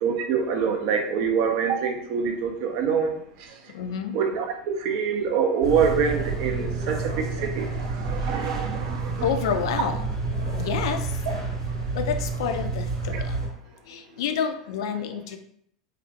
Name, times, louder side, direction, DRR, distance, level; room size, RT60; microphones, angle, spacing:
voice 1, 0.0-3.6 4.1-9.3 13.1-13.2, right 6 dB, 55° right, 5 dB, 0.4 m, -25 dB
voice 2, 3.7-4.2 9.2-10.0 10.6-11.2 11.9-13.4 13.8-15.4, left 7 dB, 65° left, 7 dB, 0.3 m, -29 dB
sound 1, 5.6-13.5, right 3 dB, 85° right, 1.0 m, -29 dB
2.4 x 2.0 x 2.6 m, 0.67 s
hypercardioid pair, 85°, 3 cm